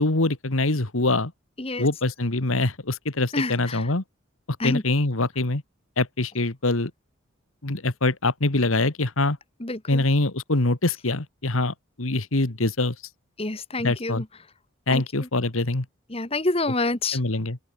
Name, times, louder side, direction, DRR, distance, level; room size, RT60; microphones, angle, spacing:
voice 1, 0.0-1.3 1.8-4.0 4.6-5.6 6.0-6.9 7.6-9.4 9.9-13.0 13.8-14.2 14.9-15.9 17.1-17.6, left 2 dB, 85° left, 1.9 m, -24 dB
voice 2, 3.3-3.8 4.6-4.8 9.6-10.0 13.4-14.2 14.9-15.0 16.1-17.2, left 2 dB, 30° left, 1.6 m, -27 dB
open air
head